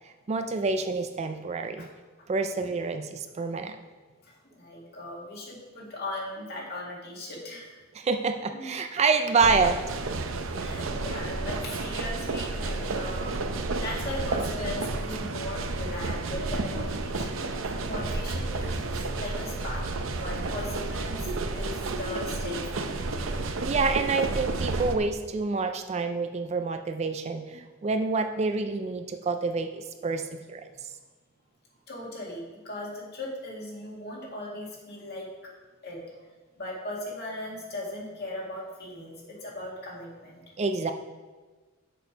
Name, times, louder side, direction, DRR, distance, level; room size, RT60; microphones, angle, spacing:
voice 1, 0.3-1.9 2.3-3.8 7.9-9.8 23.7-30.7 40.6-40.9, right 4 dB, 30° right, 7 dB, 0.3 m, -27 dB
voice 2, 4.2-7.8 8.5-8.7 10.6-13.4 13.8-19.8 20.1-23.1 31.9-35.3 35.8-36.0 36.6-40.4, left 1 dB, 50° left, -3 dB, 2.0 m, -38 dB
sound 1, 9.4-25.0, right 3 dB, 65° right, 0.6 m, -31 dB
6.9 x 6.2 x 4.9 m, 1.3 s
head